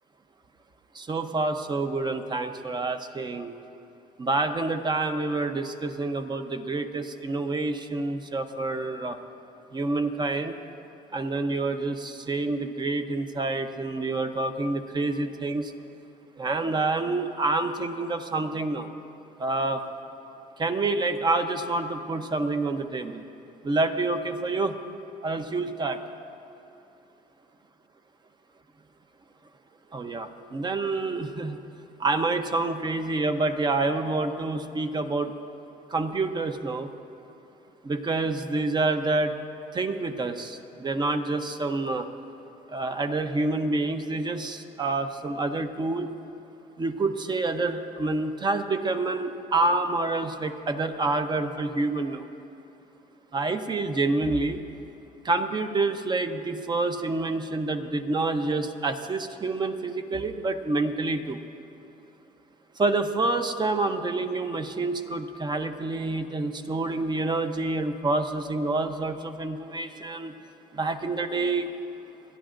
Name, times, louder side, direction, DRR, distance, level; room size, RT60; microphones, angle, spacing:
voice 1, 0.9-3.5 4.2-9.2 9.7-10.6 11.1-15.7 16.4-18.9 19.4-19.8 20.6-23.2 23.6-24.8 25.2-26.0 29.9-31.6 32.0-35.3 35.9-36.9 37.8-39.3 39.7-42.1 42.7-46.1 46.8-52.3 53.3-54.6 55.2-61.4 62.8-70.3 70.7-71.7, right 3 dB, 25° right, 7 dB, 0.7 m, -27 dB
30.0 x 10.5 x 2.6 m, 2.8 s
cardioid pair, 110°, 17 cm